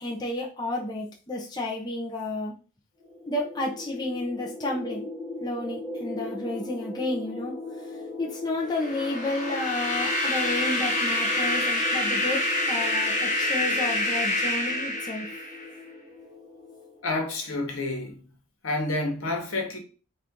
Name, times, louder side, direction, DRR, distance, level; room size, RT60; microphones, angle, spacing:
voice 1, 0.0-2.6 3.3-5.1 5.4-7.5 8.2-15.3, left 2 dB, 20° left, 0.6 m, -31 dB
sound 1, 3.0-17.4, left 2 dB, 25° right, 1.0 m, -39 dB
sound 2, 8.7-15.7, left 1 dB, 35° left, 1.0 m, -27 dB
voice 2, 17.0-18.3 18.6-19.8, left 2 dB, 75° left, 1.2 m, -29 dB
4.4 x 2.5 x 3.5 m
head